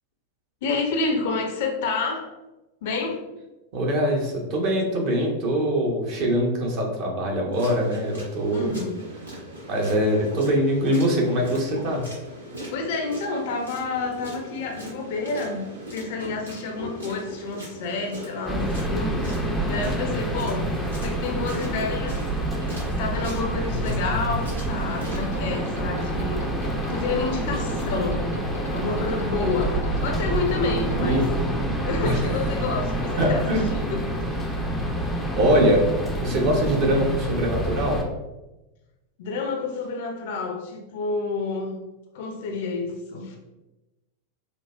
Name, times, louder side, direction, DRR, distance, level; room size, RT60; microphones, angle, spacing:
voice 1, 0.6-2.3 2.8-3.2 8.5-8.9 12.7-20.7 21.0-22.2 22.8-28.4 28.7-31.2 31.8-34.0 39.2-41.8 42.1-43.4, left 3 dB, 50° left, 2 dB, 0.5 m, -29 dB
voice 2, 3.7-8.8 9.7-12.0 31.0-31.2 32.0-32.2 33.2-33.7 35.3-35.8 36.2-38.0, equal, 45° right, 0 dB, 0.8 m, -23 dB
sound 1, 7.5-25.2, equal, 80° right, 1.0 m, -39 dB
sound 2, 18.5-38.0, right 1 dB, 5° left, 0.5 m, -27 dB
sound 3, 24.7-31.2, equal, 85° left, 0.8 m, -36 dB
4.9 x 2.0 x 2.2 m, 1.0 s
figure-of-eight pair, 90°, 0 cm